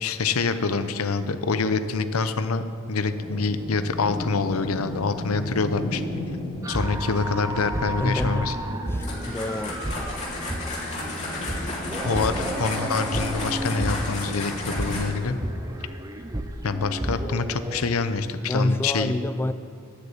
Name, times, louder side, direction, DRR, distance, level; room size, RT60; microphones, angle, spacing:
voice 1, 0.0-6.0 6.7-8.6 12.0-15.4 16.6-19.1, left 4 dB, 85° left, 11 dB, 0.7 m, -26 dB
sound 1, 3.1-15.1, left 1 dB, 50° left, 2.8 m, -36 dB
sound 2, 6.6-17.9, right 1 dB, 15° right, 0.6 m, -32 dB
voice 2, 7.9-8.5 8.9-10.1 18.4-19.5, left 1 dB, 10° left, 11 dB, 0.3 m, -27 dB
sound 3, 9.0-15.3, left 2 dB, 35° left, 3.1 m, -34 dB
11.5 x 6.7 x 9.3 m, 2.7 s
head